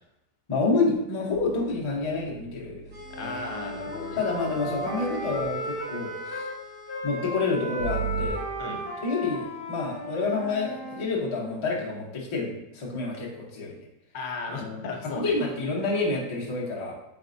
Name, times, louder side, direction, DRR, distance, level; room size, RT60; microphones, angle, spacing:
voice 1, 0.5-2.9 3.2-3.5 4.2-6.5 7.0-8.4 9.0-13.8 14.6-16.9, left 3 dB, 35° left, -4 dB, 0.4 m, -28 dB
sound 1, 1.3-5.7 7.8-8.3, right 6 dB, 80° right, 1.3 m, -38 dB
sound 2, 2.9-7.1, left 3 dB, 55° right, 0.4 m, -47 dB
Wind instrument woodwind instrument, 3.0-6.5 6.9-11.1, equal, 10° left, 1.0 m, -35 dB
voice 2, 3.1-4.2 8.6-8.8 14.1-15.4, left 3 dB, 80° left, 2 dB, 1.3 m, -35 dB
4.1 x 3.5 x 2.5 m, 0.90 s
omnidirectional pair, 1.7 m